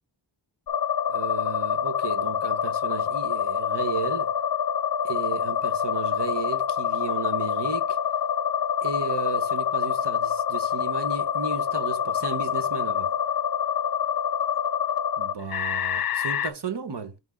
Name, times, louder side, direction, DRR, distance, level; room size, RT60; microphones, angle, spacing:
sound 1, 0.7-16.5, left 8 dB, 55° left, 0.6 m, -26 dB
voice 1, 1.1-4.3 5.0-8.0 8.8-13.1 15.2-17.1, right 5 dB, 65° right, 1.2 m, -34 dB
5.9 x 3.7 x 5.2 m
cardioid pair, 40°, 44 cm